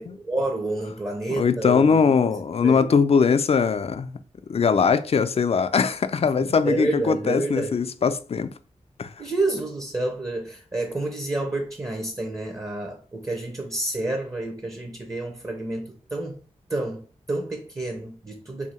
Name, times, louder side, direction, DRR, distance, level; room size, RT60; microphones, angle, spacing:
voice 1, 0.0-2.9 6.2-7.8 9.2-16.4 16.7-18.7, right 2 dB, 25° right, 0.8 m, -29 dB
voice 2, 1.4-4.1 4.5-8.5 9.0-9.1, left 5 dB, 55° left, 0.4 m, -21 dB
2.7 x 2.7 x 4.3 m
cardioid pair, 55°, 13 cm